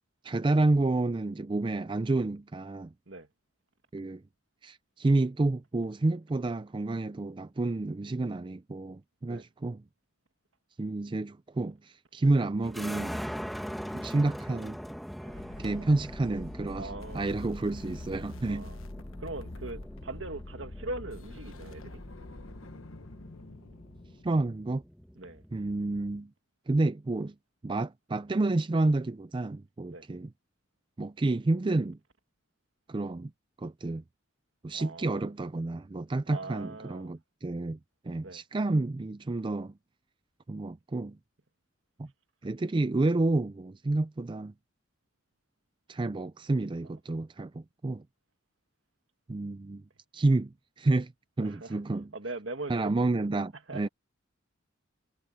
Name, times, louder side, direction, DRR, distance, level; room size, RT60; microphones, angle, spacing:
voice 1, 0.2-2.9 3.9-4.2 4.6-9.8 10.8-13.2 13.9-14.8 15.6-18.7 24.2-24.8 25.5-26.3 26.7-27.3 27.6-30.3 31.0-32.0 32.9-33.3 33.6-34.0 34.6-37.8 38.0-39.7 40.5-41.2 42.0-42.1 42.4-44.5 45.9-48.0 49.3-49.8 50.1-51.1 51.4-52.1 52.7-53.9, right 2 dB, 25° right, 0.4 m, -29 dB
sound 1, 12.6-26.2, equal, ahead, 1.8 m, -43 dB
voice 2, 15.2-15.6 16.7-17.5 18.5-18.8 19.2-22.0 25.2-25.4 29.9-30.1 34.7-35.3 36.3-37.1 38.2-38.4 51.4-51.8 52.1-53.1 53.7-53.9, right 2 dB, 65° right, 2.2 m, -41 dB
sound 2, 15.3-24.4, left 2 dB, 85° left, 1.2 m, -45 dB
head